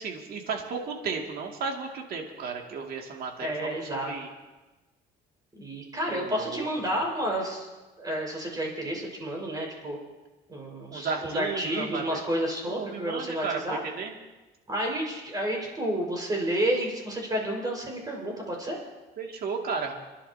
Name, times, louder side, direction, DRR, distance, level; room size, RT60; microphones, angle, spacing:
voice 1, 0.0-4.3 6.1-6.7 10.9-12.2 12.7-14.1 19.2-19.9, right 5 dB, 60° right, 1 dB, 2.4 m, -34 dB
voice 2, 3.4-4.1 5.5-7.7 8.0-10.0 10.5-13.8 14.7-18.8, right 1 dB, 20° right, -1 dB, 5.2 m, -30 dB
30.0 x 11.0 x 2.9 m, 1.2 s
cardioid pair, 110°, 17 cm